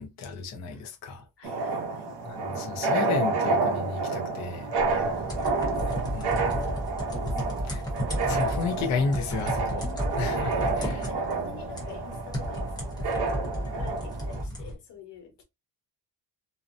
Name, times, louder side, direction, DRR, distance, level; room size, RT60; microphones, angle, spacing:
voice 1, 0.0-1.2 2.2-4.7 6.1-6.4 7.7-7.8 8.1-9.9 10.2-11.0, left 4 dB, 40° left, 0.5 m, -32 dB
voice 2, 1.4-2.1 4.8-5.8 6.1-6.8 7.1-7.9 9.8-13.3 13.6-15.4, left 5 dB, 70° left, 1.3 m, -47 dB
sound 1, 1.4-14.4, right 3 dB, 65° right, 0.7 m, -30 dB
sound 2, 4.7-14.7, equal, 10° left, 0.8 m, -33 dB
2.7 x 2.0 x 2.5 m
cardioid pair, 170°, 44 cm